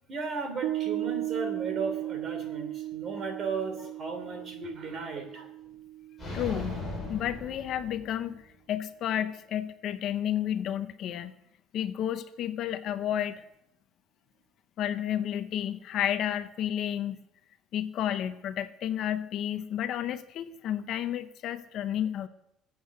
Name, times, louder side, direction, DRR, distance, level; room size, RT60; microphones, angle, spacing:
voice 1, 0.1-5.5, right 4 dB, 30° right, 6 dB, 3.0 m, -35 dB
Piano, 0.6-7.4, right 14 dB, 70° right, 1.2 m, -36 dB
sound 1, 6.2-8.4, left 2 dB, 5° left, 5.2 m, -38 dB
voice 2, 6.3-8.4 8.7-11.3 11.7-13.4 14.8-17.2 17.7-22.3, left 10 dB, 45° left, 11 dB, 0.7 m, -31 dB
20.5 x 8.2 x 6.6 m, 0.81 s
cardioid pair, 170°, 0 cm